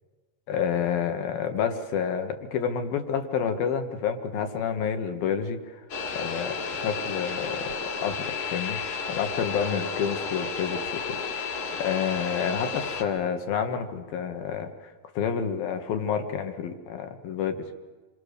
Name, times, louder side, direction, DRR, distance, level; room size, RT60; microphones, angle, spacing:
voice 1, 0.5-5.8 6.1-8.8 9.1-11.4 11.8-17.7, left 7 dB, 70° left, 7 dB, 3.3 m, -29 dB
sound 1, 5.9-13.0, left 5 dB, 55° left, 3.4 m, -32 dB
28.0 x 23.0 x 6.7 m, 1.3 s
omnidirectional pair, 4.4 m